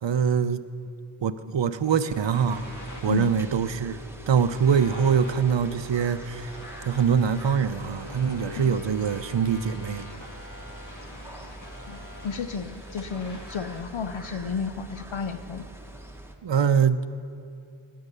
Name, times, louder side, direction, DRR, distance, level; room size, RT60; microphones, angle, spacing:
voice 1, 0.0-0.6 1.2-2.7 3.0-4.0 4.3-6.5 6.9-10.1 16.4-17.1, right 7 dB, 60° right, 12 dB, 0.7 m, -24 dB
sound 1, 1.8-13.8, left 1 dB, 35° left, 1.9 m, -45 dB
sound 2, 2.5-16.4, right 1 dB, 5° right, 1.4 m, -43 dB
voice 2, 11.9-15.7, left 5 dB, 70° left, 9 dB, 0.8 m, -32 dB
19.0 x 10.0 x 6.8 m, 2.6 s
wide cardioid pair, 45°, 49 cm